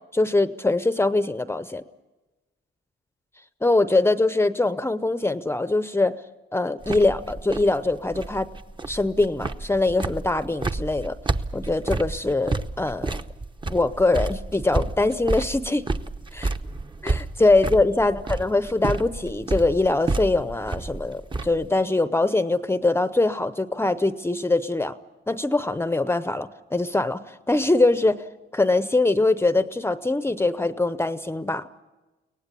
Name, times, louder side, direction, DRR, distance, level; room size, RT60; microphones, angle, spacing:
voice 1, 0.0-1.8 3.6-6.1 6.5-8.5 8.9-11.2 11.5-13.2 13.7-15.8 16.3-16.5 17.0-24.9 25.3-28.2 28.5-31.7, left 2 dB, 10° left, 13 dB, 0.7 m, -23 dB
sound 1, 6.8-21.7, right 3 dB, 25° right, 0.9 m, -30 dB
23.5 x 18.0 x 8.3 m, 1.2 s
cardioid pair, 90°, 20 cm